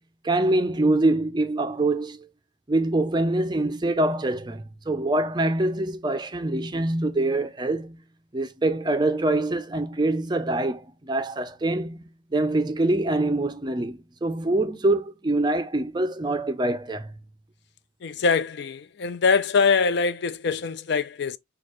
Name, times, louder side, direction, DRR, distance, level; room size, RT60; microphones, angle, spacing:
voice 1, 0.2-2.3 2.7-8.0 8.3-12.0 12.3-17.1, right 2 dB, 20° right, 0.4 m, -24 dB
voice 2, 18.0-21.4, left 5 dB, 55° left, 0.4 m, -23 dB
6.2 x 2.3 x 3.0 m
head